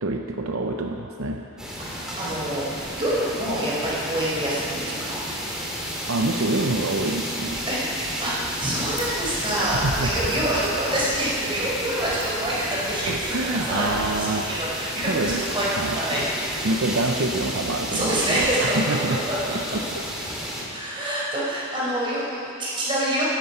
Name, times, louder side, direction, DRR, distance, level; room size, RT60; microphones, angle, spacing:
voice 1, 0.0-1.4 6.1-7.7 9.6-10.1 13.1-14.8 15.0-16.0 16.6-19.2 19.5-20.0, right 2 dB, 70° right, 4 dB, 0.7 m, -27 dB
sound 1, 1.6-20.6, equal, 5° right, 2.2 m, -32 dB
voice 2, 1.9-5.1 7.7-8.3 8.6-13.3 13.7-15.7 16.0-16.7 17.9-18.8 19.1-19.6 20.7-23.2, right 1 dB, 25° right, -7 dB, 4.4 m, -26 dB
16.5 x 11.5 x 5.6 m, 2.8 s
head